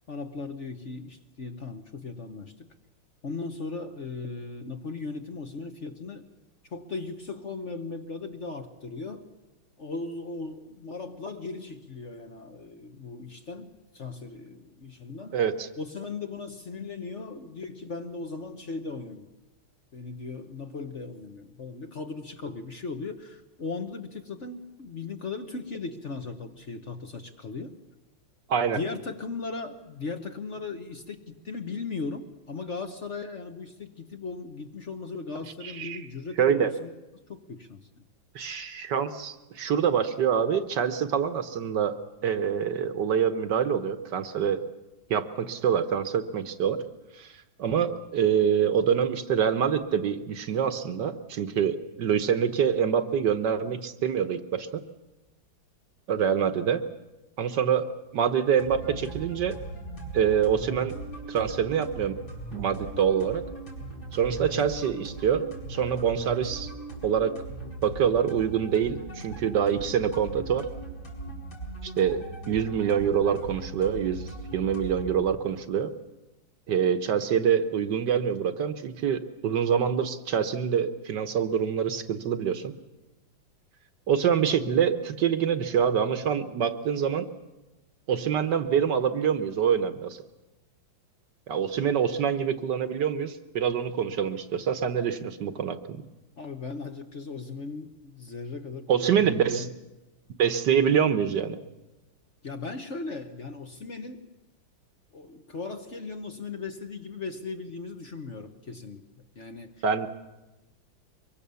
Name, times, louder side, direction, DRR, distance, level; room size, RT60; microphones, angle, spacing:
voice 1, 0.1-2.7 3.2-6.3 6.7-9.3 9.8-15.4 15.8-19.3 19.9-27.8 28.6-36.9 37.3-37.9 84.6-84.7 96.4-99.7 102.4-104.2 105.1-109.0 109.3-109.8, left 4 dB, 45° left, 6 dB, 1.2 m, -37 dB
voice 2, 15.3-15.7 28.5-28.8 35.6-36.0 36.4-36.7 38.3-41.9 42.2-44.6 45.1-46.8 47.2-47.3 47.6-54.8 56.1-56.8 57.4-59.6 60.1-60.9 61.3-62.2 62.5-63.4 64.1-66.7 67.0-67.3 67.8-70.7 71.8-75.9 76.7-82.7 84.1-87.3 88.1-90.2 91.5-96.0 98.9-99.7 100.4-101.6 109.8-110.1, right 8 dB, 65° right, 10 dB, 1.5 m, -25 dB
sound 1, 58.6-75.2, right 2 dB, 75° left, 6.3 m, -39 dB
24.0 x 23.0 x 6.9 m, 1.1 s
omnidirectional pair, 2.2 m